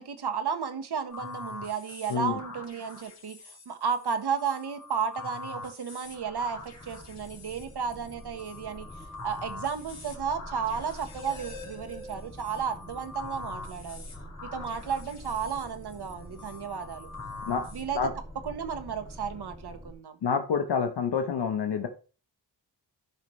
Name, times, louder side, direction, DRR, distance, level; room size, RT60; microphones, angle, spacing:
voice 1, 0.0-8.9 9.2-14.0 14.4-17.1 17.7-18.1 18.4-20.2, right 6 dB, 65° right, 1.3 m, -33 dB
sound 1, 1.1-17.8, left 3 dB, 40° left, 4.0 m, -44 dB
sound 2, 6.0-19.9, equal, 15° left, 2.4 m, -46 dB
voice 2, 20.2-21.9, left 6 dB, 70° left, 1.0 m, -27 dB
13.0 x 5.3 x 3.2 m
wide cardioid pair, 100°, 42 cm